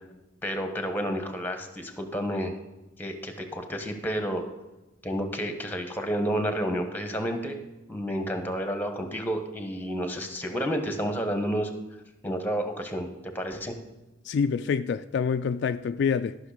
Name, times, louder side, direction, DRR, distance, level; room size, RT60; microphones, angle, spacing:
voice 1, 0.4-2.6 3.0-4.4 5.0-7.6 7.9-11.7 12.2-13.7, equal, 10° left, 1.2 m, -30 dB
voice 2, 14.3-16.4, left 6 dB, 60° left, 0.3 m, -26 dB
12.5 x 6.3 x 5.0 m
head